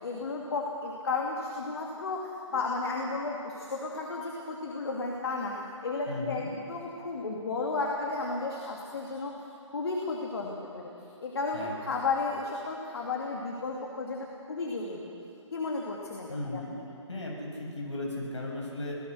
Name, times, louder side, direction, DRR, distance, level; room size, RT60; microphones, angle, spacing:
voice 1, 0.0-5.5 5.8-9.3 9.7-10.9 11.2-15.1 15.5-16.9, left 3 dB, 50° left, -1 dB, 2.6 m, -33 dB
voice 2, 6.1-6.5 11.5-11.7 16.3-16.7 17.1-18.9, left 2 dB, 70° left, -1 dB, 7.1 m, -36 dB
26.0 x 18.5 x 6.6 m, 2.7 s
figure-of-eight pair, 140°, 16 cm